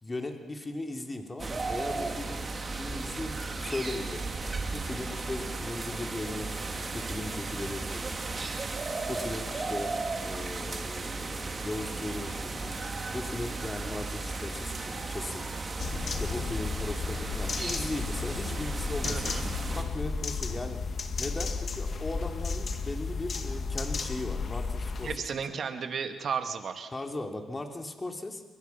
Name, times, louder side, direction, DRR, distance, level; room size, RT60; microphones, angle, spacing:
voice 1, 0.0-4.3 4.7-8.5 9.1-9.9 10.2-12.8 13.1-15.5 16.1-19.3 19.7-20.8 21.2-25.3 26.9-28.4, left 2 dB, 20° left, 3 dB, 3.2 m, -38 dB
sound 1, 1.4-19.8, right 3 dB, 30° right, 3.2 m, -35 dB
sound 2, 15.8-25.1, left 4 dB, 45° left, 1.9 m, -33 dB
voice 2, 19.0-19.5 25.0-26.9, right 6 dB, 55° right, 6 dB, 2.3 m, -34 dB
29.5 x 22.5 x 5.9 m, 1.2 s
cardioid pair, 90°, 0 cm